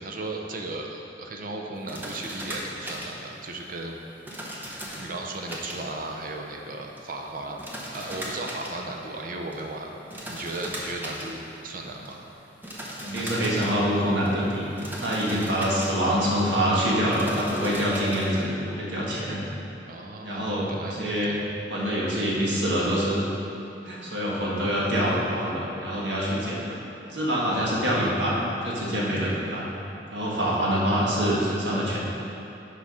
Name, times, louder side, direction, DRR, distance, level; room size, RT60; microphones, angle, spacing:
voice 1, 0.0-4.0 4.4-4.5 5.0-7.6 7.9-9.9 10.3-12.2 19.9-21.5 27.4-27.8, right 2 dB, 50° right, 1 dB, 0.7 m, -36 dB
sound 1, 1.7-18.4, equal, 10° right, 0.8 m, -39 dB
voice 2, 13.0-19.4 20.2-21.3 21.7-23.2 23.8-26.8 27.1-29.7 30.1-32.0, equal, 75° right, -5 dB, 1.6 m, -25 dB
6.2 x 5.0 x 5.6 m, 2.9 s
head